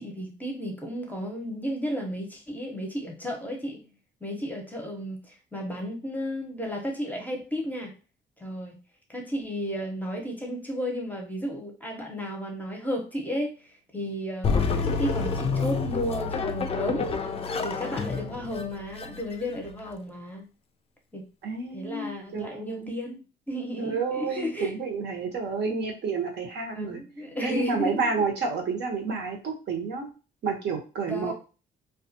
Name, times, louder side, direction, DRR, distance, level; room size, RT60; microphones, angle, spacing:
voice 1, 0.0-3.9 4.2-7.9 8.4-8.8 9.1-17.2 17.6-20.5 21.1-21.3 21.7-24.7 26.7-28.0 31.0-31.3, equal, 10° left, 0 dB, 0.7 m, -33 dB
sound 1, 14.4-19.9, left 5 dB, 30° left, 0.3 m, -29 dB
voice 2, 21.4-22.9 23.8-27.0 27.4-30.1 30.4-31.3, right 4 dB, 60° right, 1 dB, 0.9 m, -30 dB
2.4 x 2.3 x 2.6 m, 0.33 s
cardioid pair, 90°, 20 cm